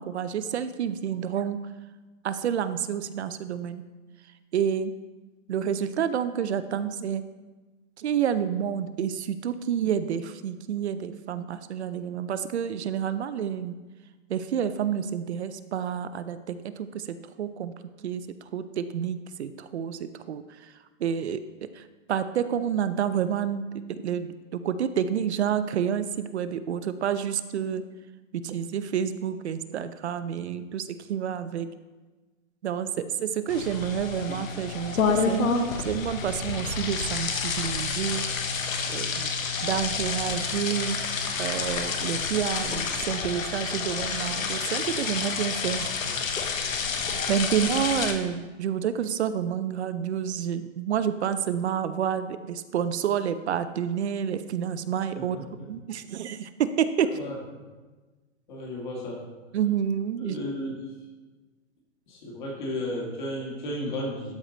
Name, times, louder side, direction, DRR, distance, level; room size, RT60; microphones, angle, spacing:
voice 1, 0.0-1.6 2.2-3.8 4.5-4.9 5.5-7.2 8.0-13.8 14.3-17.7 18.0-18.3 18.5-20.7 21.0-21.4 21.7-27.9 28.3-31.7 32.6-38.3 38.9-39.4 39.6-41.0 41.4-45.9 46.1-46.3 47.3-55.4 55.7-57.1 59.5-60.4, right 8 dB, 55° right, 12 dB, 0.5 m, -29 dB
sound 1, 33.5-48.1, left 5 dB, 80° left, 1.2 m, -29 dB
voice 2, 58.5-59.2 60.2-60.7 62.1-64.3, left 1 dB, 35° left, -2 dB, 1.9 m, -33 dB
12.5 x 4.7 x 3.9 m, 1.3 s
hypercardioid pair, 180°, 40 cm